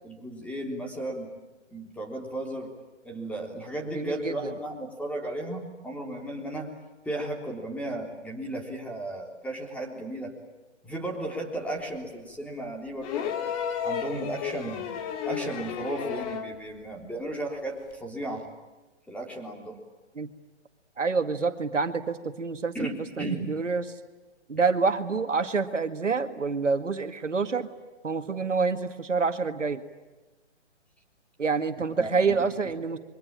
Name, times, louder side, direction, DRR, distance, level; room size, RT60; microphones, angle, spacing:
voice 1, 0.0-1.3 1.7-2.7 3.0-6.7 7.1-10.3 10.8-14.9 15.2-18.5 19.1-19.8 22.7-22.9 23.2-23.5 32.0-32.2, right 1 dB, 5° left, 1 dB, 3.6 m, -35 dB
voice 2, 3.9-4.5 20.2-20.3 21.0-22.9 23.2-23.9 24.5-27.7 28.0-29.8 31.4-33.0, right 4 dB, 90° right, 8 dB, 2.1 m, -27 dB
sound 1, 13.0-16.6 17.9-18.0, left 8 dB, 30° left, 2.2 m, -32 dB
27.5 x 23.5 x 8.9 m, 1.2 s
hypercardioid pair, 140°, 36 cm